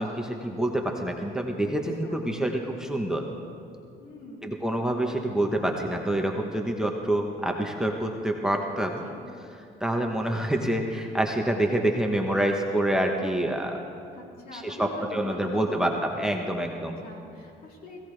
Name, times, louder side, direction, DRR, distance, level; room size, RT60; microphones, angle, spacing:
voice 1, 0.0-3.2 4.4-9.0 9.8-13.8 14.5-17.0, right 1 dB, 5° right, 2 dB, 1.1 m, -27 dB
voice 2, 4.0-4.6 9.0-9.2 14.1-15.9 16.7-16.8 17.0-18.0, left 1 dB, 60° left, -2 dB, 3.3 m, -44 dB
21.0 x 16.5 x 3.4 m, 2.5 s
cardioid pair, 110°, 17 cm